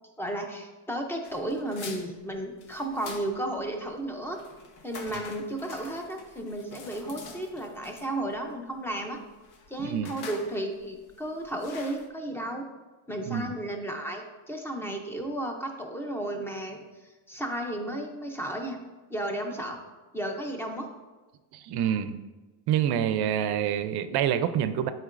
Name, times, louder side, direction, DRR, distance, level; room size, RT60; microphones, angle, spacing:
voice 1, 0.2-4.4 4.8-9.2 9.7-12.7 13.1-18.8 19.1-19.8 20.1-20.9, right 1 dB, 5° left, 3 dB, 0.4 m, -33 dB
sound 1, 1.2-12.1, left 4 dB, 85° left, 1.0 m, -46 dB
voice 2, 9.8-10.1 13.3-13.5 21.5-22.2 22.7-24.9, right 9 dB, 55° right, 11 dB, 0.5 m, -27 dB
11.0 x 4.4 x 2.5 m, 1.2 s
cardioid pair, 160°, 47 cm